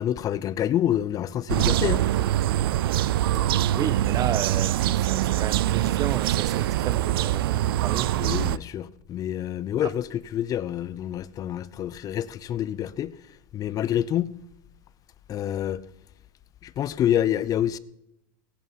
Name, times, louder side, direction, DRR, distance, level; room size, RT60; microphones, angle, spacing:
voice 1, 0.0-2.0 8.2-13.1 13.5-14.3 15.3-15.8 16.6-17.8, left 11 dB, 30° left, 0.6 m, -27 dB
sound 1, 1.5-8.6, right 13 dB, 90° right, 0.5 m, -24 dB
voice 2, 3.7-8.2 9.8-9.9, right 10 dB, 30° right, 0.5 m, -32 dB
17.5 x 11.0 x 5.7 m
supercardioid pair, 135°, 12 cm